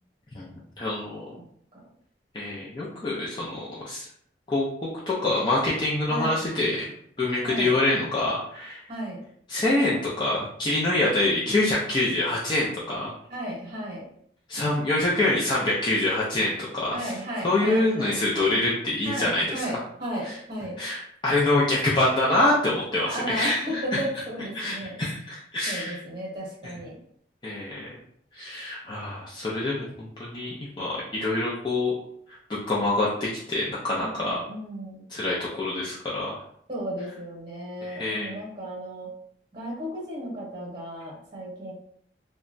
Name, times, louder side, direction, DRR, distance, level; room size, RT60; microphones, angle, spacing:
voice 1, 0.8-1.4 2.3-4.1 4.5-6.8 7.2-8.8 9.5-13.1 14.5-19.6 20.2-20.4 20.8-23.8 24.5-26.0 26.6-26.7 27.4-27.9 28.3-31.9 32.5-34.4 35.1-36.4 37.8-38.3, left 2 dB, 25° left, -6 dB, 0.4 m, -26 dB
voice 2, 7.4-7.7 8.9-9.2 13.3-14.1 16.9-18.2 19.0-20.8 23.0-24.9 25.7-27.0 34.0-35.0 36.7-39.1 39.5-41.7, right 1 dB, 35° right, -5 dB, 0.9 m, -34 dB
2.8 x 2.2 x 2.5 m, 0.66 s
head